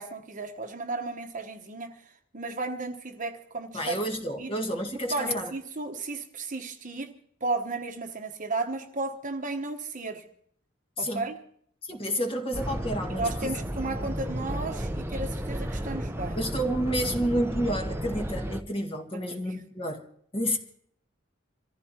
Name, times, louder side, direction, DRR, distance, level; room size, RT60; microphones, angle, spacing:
voice 1, 0.0-4.0 4.4-4.5 5.1-7.1 7.4-10.2 11.0-11.4 13.1-16.4 19.1-19.6, right 3 dB, 45° right, 1.1 m, -34 dB
voice 2, 3.7-5.5 11.0-11.3 11.8-13.5 16.4-20.0 20.3-20.6, equal, 30° left, 1.8 m, -30 dB
sound 1, 12.5-18.6, equal, 15° right, 0.8 m, -33 dB
27.0 x 14.5 x 2.9 m
head